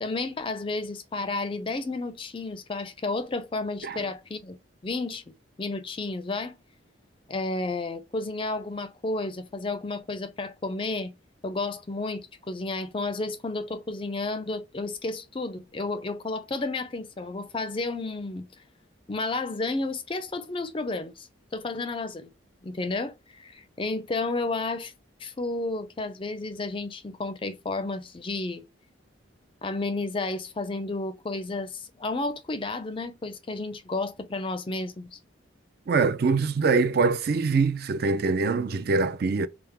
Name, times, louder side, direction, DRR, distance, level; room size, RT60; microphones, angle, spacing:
voice 1, 0.0-4.6 4.8-5.2 5.6-6.5 7.3-11.1 11.4-18.5 19.1-21.3 21.5-22.3 22.6-24.9 25.2-28.6 29.6-35.2, left 3 dB, 25° left, 0.4 m, -32 dB
voice 2, 35.9-39.5, right 4 dB, 50° right, 0.4 m, -24 dB
3.6 x 2.0 x 4.3 m
head